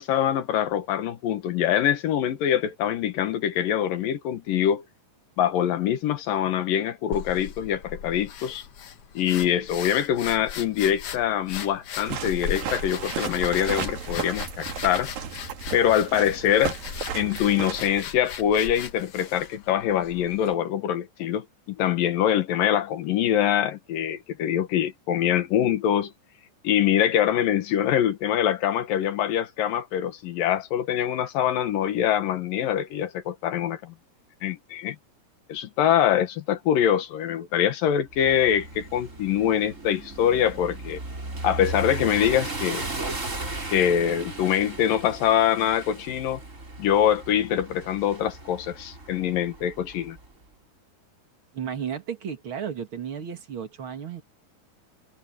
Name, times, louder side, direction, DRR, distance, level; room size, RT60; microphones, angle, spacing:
voice 1, 0.0-4.8 5.4-8.6 9.1-15.1 15.7-16.8 17.1-26.1 26.6-33.9 34.4-35.0 35.5-41.0 41.4-42.8 43.7-46.4 46.8-50.2, left 10 dB, 80° left, 3.2 m, -24 dB
sound 1, 7.1-20.5, left 8 dB, 55° left, 1.7 m, -38 dB
sound 2, 12.0-18.0, right 7 dB, 85° right, 4.1 m, -34 dB
sound 3, 38.1-50.3, right 2 dB, 20° right, 4.0 m, -36 dB
voice 2, 51.5-54.2, right 8 dB, 45° right, 2.2 m, -33 dB
omnidirectional pair, 4.0 m